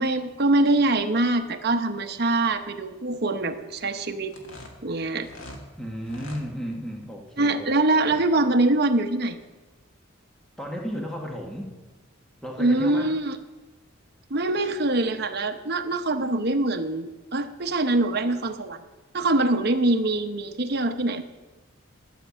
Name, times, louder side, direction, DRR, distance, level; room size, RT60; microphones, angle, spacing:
voice 1, 0.0-4.3 4.8-5.3 7.4-9.4 12.6-13.3 14.3-18.8 19.1-21.2, right 2 dB, 50° right, 6 dB, 0.9 m, -24 dB
sound 1, 4.3-5.6 6.0-6.4, left 1 dB, 85° left, 2.0 m, -42 dB
voice 2, 5.8-7.7 8.1-8.2 10.6-11.7 12.4-13.1, equal, ahead, -1 dB, 1.5 m, -34 dB
12.5 x 6.7 x 8.3 m, 1.2 s
head